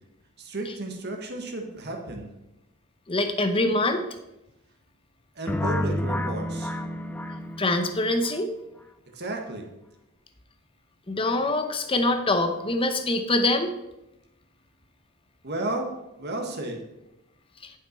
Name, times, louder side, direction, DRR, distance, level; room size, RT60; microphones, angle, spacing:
voice 1, 0.4-2.3 5.3-6.7 9.1-9.7 15.4-15.9 16.2-16.8, right 2 dB, 50° right, 3 dB, 1.5 m, -33 dB
voice 2, 3.1-4.0 7.6-8.5 11.1-13.7, left 2 dB, 25° left, 7 dB, 0.8 m, -24 dB
sound 1, 5.5-8.3, left 1 dB, 10° left, 0.4 m, -30 dB
10.5 x 5.8 x 4.4 m, 0.91 s
head